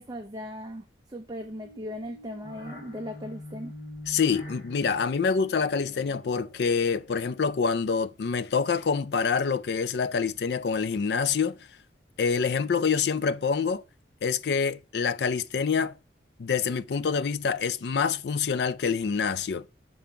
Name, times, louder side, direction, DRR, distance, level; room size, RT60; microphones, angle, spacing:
voice 1, 0.0-3.7, equal, 20° right, 0.7 m, -38 dB
sound 1, 1.4-7.8, left 1 dB, 45° left, 2.9 m, -45 dB
voice 2, 4.1-11.6 12.2-13.8 14.2-15.9 16.4-19.7, left 5 dB, 65° left, 0.4 m, -26 dB
7.0 x 5.0 x 5.6 m
head